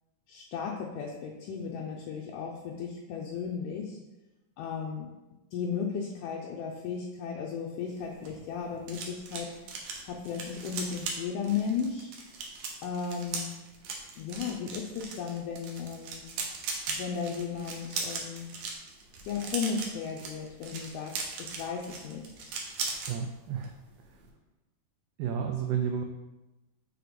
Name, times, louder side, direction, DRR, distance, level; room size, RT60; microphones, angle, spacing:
voice 1, 0.3-4.0 4.6-5.1 5.5-9.5 10.1-12.1 12.8-13.5 14.2-16.3 16.9-18.4 19.3-22.5, left 6 dB, 80° left, -1 dB, 1.8 m, -35 dB
sound 1, 7.9-23.1 23.5-23.7 24.0-24.3, right 4 dB, 70° right, 2.0 m, -39 dB
voice 2, 23.1-23.8 24.1-24.2 25.2-26.0, right 7 dB, 90° right, 4 dB, 1.9 m, -31 dB
6.4 x 4.3 x 5.1 m, 1.1 s
omnidirectional pair, 4.5 m